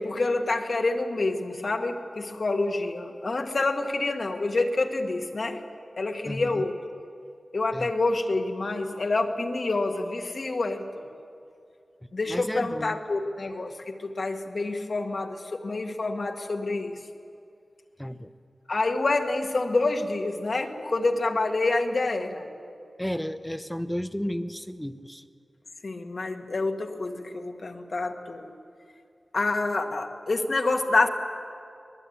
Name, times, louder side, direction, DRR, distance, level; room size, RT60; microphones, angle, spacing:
voice 1, 0.0-5.6 6.0-6.8 7.5-11.1 12.1-17.0 18.7-22.4 25.8-28.5 29.3-31.1, left 2 dB, 55° left, 4 dB, 1.7 m, -27 dB
voice 2, 6.2-6.7 7.7-7.9 12.0-13.0 18.0-18.3 23.0-25.2, equal, 5° left, 11 dB, 0.9 m, -33 dB
23.5 x 20.5 x 9.3 m, 2.5 s
wide cardioid pair, 95°, 0 cm